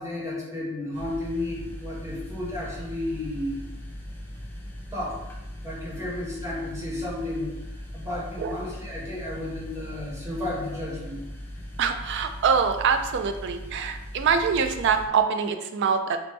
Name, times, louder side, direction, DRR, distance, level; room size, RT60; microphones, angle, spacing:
voice 1, 0.0-3.6 4.9-5.2 5.6-7.5 7.9-11.2, left 1 dB, 15° right, -6 dB, 1.1 m, -32 dB
sound 1, 0.9-15.1, equal, 10° left, 0.4 m, -39 dB
voice 2, 11.8-16.2, right 6 dB, 55° right, 7 dB, 0.3 m, -24 dB
3.4 x 2.9 x 3.1 m, 0.96 s
head